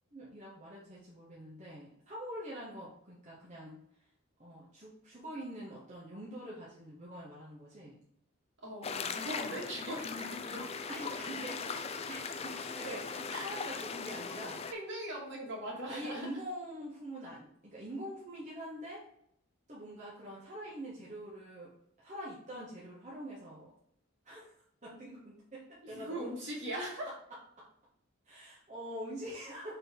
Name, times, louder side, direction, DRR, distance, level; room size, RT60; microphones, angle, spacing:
voice 1, 0.1-3.8 4.4-8.0 10.9-14.7 15.8-19.0 19.7-21.7 22.0-23.7 24.2-24.5 24.8-26.3 27.6-27.7 28.2-29.8, equal, 35° right, -7 dB, 1.7 m, -45 dB
voice 2, 8.6-10.7 13.3-13.4 14.7-16.3 25.8-27.1, equal, 60° right, -3 dB, 2.7 m, -40 dB
sound 1, 8.8-14.7, left 5 dB, 30° left, 0.4 m, -39 dB
6.6 x 4.7 x 3.9 m, 0.70 s
head